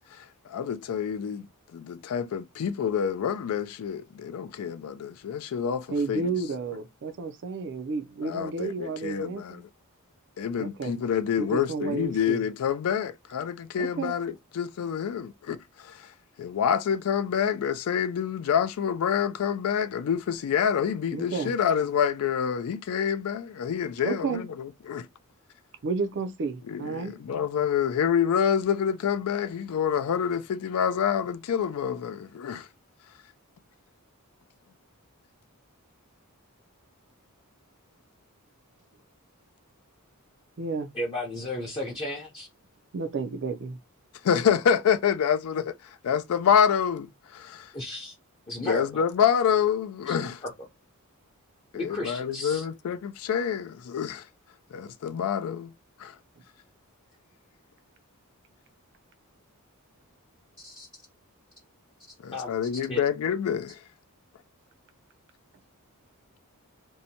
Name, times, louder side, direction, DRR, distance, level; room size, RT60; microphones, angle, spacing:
voice 1, 0.1-1.5 1.7-6.3 8.2-9.6 10.4-16.1 16.4-25.1 26.7-32.7 44.2-47.7 48.7-50.4 51.7-54.2 54.7-55.7 56.0-56.1 62.2-63.8, left 8 dB, 70° left, 0.3 m, -27 dB
voice 2, 5.9-9.6 10.6-11.0 11.4-12.4 13.8-14.2 21.1-21.5 24.0-24.5 25.8-27.2 40.6-40.9 42.9-43.8, right 4 dB, 55° right, 0.4 m, -31 dB
voice 3, 40.9-42.5 47.7-48.1 48.5-49.0 50.0-50.5 51.7-52.6 60.6-60.9 62.3-62.6 62.9-63.0, left 1 dB, 25° left, 0.6 m, -34 dB
2.7 x 2.1 x 2.7 m
head